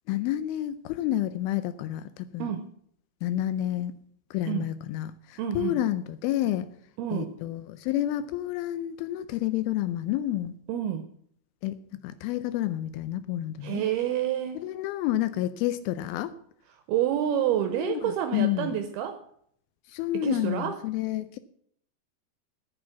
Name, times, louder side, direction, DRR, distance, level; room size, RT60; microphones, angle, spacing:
voice 1, 0.1-2.5 3.2-3.9 4.3-6.7 7.1-10.5 11.6-13.8 14.6-16.3 17.8-18.8 19.9-21.4, left 13 dB, 90° left, 2.1 m, -29 dB
voice 2, 5.4-5.8 7.0-7.3 10.7-11.1 13.6-14.7 16.9-19.2 20.1-20.8, right 10 dB, 80° right, 2.5 m, -28 dB
10.0 x 8.9 x 7.1 m
omnidirectional pair, 5.0 m